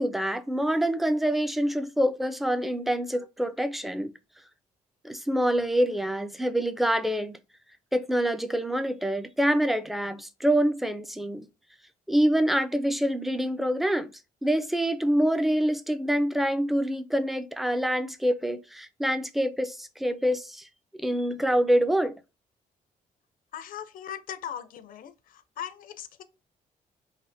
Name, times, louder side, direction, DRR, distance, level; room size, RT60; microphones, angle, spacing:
voice 1, 0.0-4.1 5.0-7.4 7.9-11.5 12.1-14.1 14.4-20.6 21.0-22.2, equal, ahead, 0.4 m, -26 dB
voice 2, 23.5-26.2, left 9 dB, 70° left, 0.4 m, -39 dB
3.3 x 2.1 x 2.5 m
cardioid pair, 80°, 15 cm